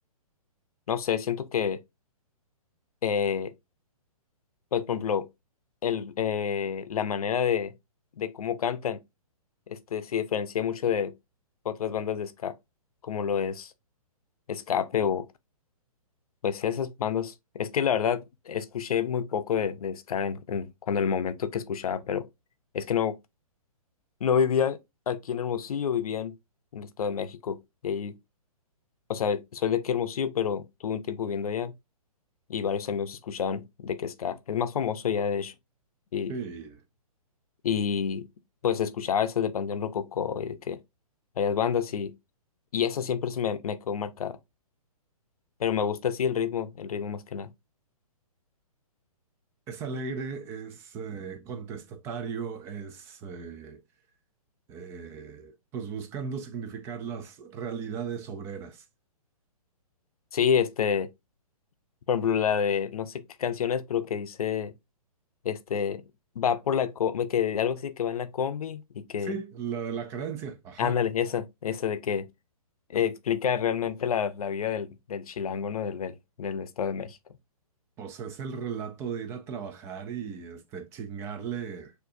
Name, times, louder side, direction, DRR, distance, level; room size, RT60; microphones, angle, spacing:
voice 1, 0.9-1.8 3.0-3.5 4.7-5.3 5.8-7.7 8.2-9.0 9.7-11.1 11.6-12.6 13.0-13.7 14.5-15.3 16.4-22.3 22.7-23.2 24.2-24.8 25.1-26.4 26.7-28.1 29.1-31.7 32.5-35.5 36.1-36.3 37.6-38.3 38.6-40.8 41.4-42.1 42.7-44.4 45.6-47.5 60.3-61.1 62.1-64.7 65.4-66.0 66.4-69.3 70.8-72.3 72.9-77.2, left 8 dB, 75° left, 0.7 m, -28 dB
voice 2, 36.3-36.8 49.7-53.8 54.7-58.9 69.2-71.0 78.0-81.9, right 6 dB, 15° right, 0.4 m, -36 dB
6.3 x 2.7 x 2.6 m
hypercardioid pair, 150°, 19 cm